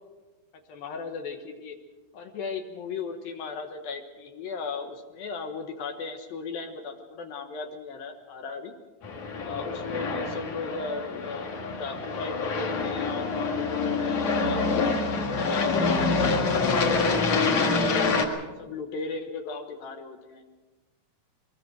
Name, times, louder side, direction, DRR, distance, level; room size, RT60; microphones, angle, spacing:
voice 1, 0.7-1.8 2.1-8.8 9.4-17.2 17.7-20.4, left 4 dB, 70° left, 5 dB, 2.9 m, -36 dB
Aircraft, 9.0-18.2, left 4 dB, 50° left, 2.7 m, -26 dB
22.5 x 21.5 x 6.3 m, 1.2 s
omnidirectional pair, 4.7 m